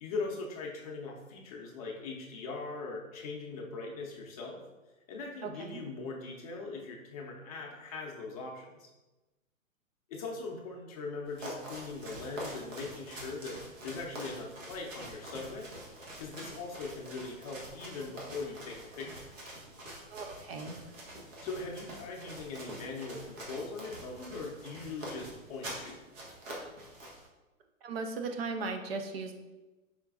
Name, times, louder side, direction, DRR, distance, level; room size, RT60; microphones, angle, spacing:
voice 1, 0.0-4.6 5.1-8.9 10.1-15.7 16.2-19.2 21.4-26.0, left 3 dB, 30° left, -1 dB, 0.6 m, -40 dB
voice 2, 5.4-5.8 20.1-20.8 27.8-29.3, right 4 dB, 50° right, 6 dB, 0.5 m, -37 dB
sound 1, 11.3-27.3, right 1 dB, 65° right, 1.5 m, -45 dB
5.0 x 3.7 x 2.3 m, 1.1 s
hypercardioid pair, 145°, 41 cm